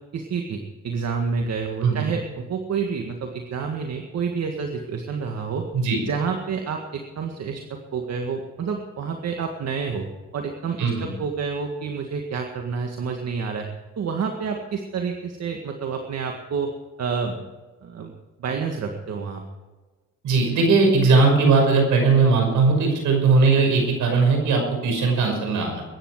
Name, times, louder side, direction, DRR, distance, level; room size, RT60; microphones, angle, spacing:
voice 1, 0.1-5.7 6.1-10.1 10.3-13.7 14.0-16.7 17.0-17.4 17.8-18.1 18.4-19.4, right 5 dB, 60° right, 3 dB, 1.8 m, -29 dB
voice 2, 20.2-25.8, right 4 dB, 80° right, 2 dB, 5.8 m, -19 dB
22.0 x 10.0 x 4.9 m, 1.3 s
cardioid pair, 90°, 30 cm